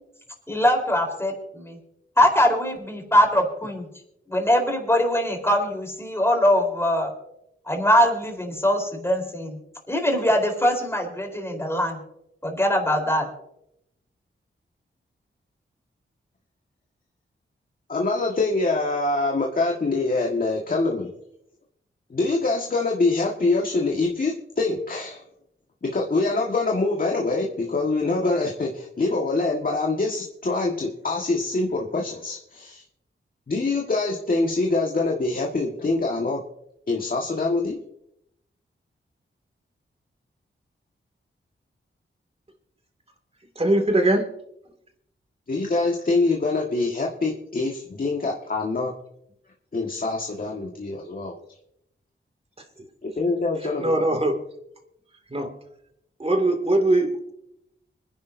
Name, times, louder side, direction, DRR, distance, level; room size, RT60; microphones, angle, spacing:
voice 1, 0.5-1.8 2.2-3.9 4.3-7.1 7.7-9.6 9.9-12.0 12.4-13.3, equal, 10° left, 2 dB, 4.0 m, -22 dB
voice 2, 17.9-21.1 22.1-25.2 25.8-32.8 33.5-36.4 36.9-37.8 45.5-48.9 49.7-51.3 53.2-54.0, left 3 dB, 45° left, 0 dB, 1.6 m, -24 dB
voice 3, 43.6-44.2 53.8-54.4 55.3-55.5 56.2-57.3, right 1 dB, 30° right, 5 dB, 2.4 m, -21 dB
25.5 x 10.5 x 2.7 m, 0.78 s
wide cardioid pair, 80°, 21 cm